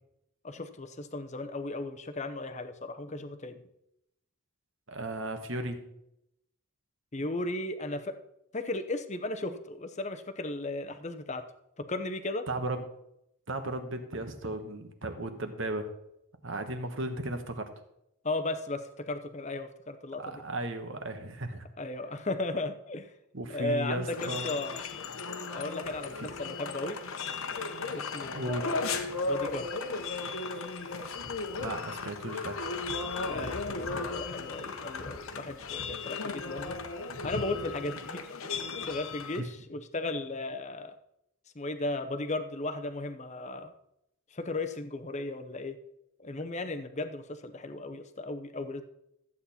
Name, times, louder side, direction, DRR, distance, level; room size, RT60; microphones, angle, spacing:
voice 1, 0.4-3.6 7.1-8.1 8.5-11.4 11.8-12.5 18.2-20.4 21.8-23.1 23.5-24.8 25.5-27.0 27.9-28.8 29.2-29.7 33.2-36.8 37.2-41.0 41.5-43.7 44.3-45.8 46.2-48.8, left 2 dB, 30° left, 8 dB, 0.8 m, -36 dB
voice 2, 4.9-5.9 12.5-12.8 13.5-15.9 16.4-17.7 20.2-21.6 23.3-24.5 26.2-26.3 28.3-28.7 31.6-32.6 39.4-39.5, right 1 dB, 55° right, 7 dB, 1.4 m, -35 dB
sound 1, 24.1-39.4, left 4 dB, 70° left, 1.1 m, -36 dB
14.0 x 8.5 x 4.3 m, 0.81 s
head